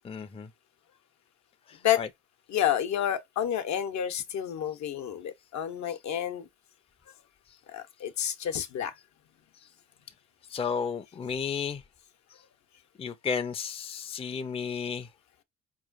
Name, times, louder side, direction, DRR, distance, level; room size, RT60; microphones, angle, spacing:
voice 1, 0.0-0.5 1.7-2.1 10.5-11.8 13.0-15.1, left 6 dB, 20° left, 0.4 m, -33 dB
voice 2, 2.5-6.5 7.7-8.9, left 10 dB, 70° left, 0.8 m, -29 dB
4.5 x 3.0 x 2.4 m
cardioid pair, 90°, 30 cm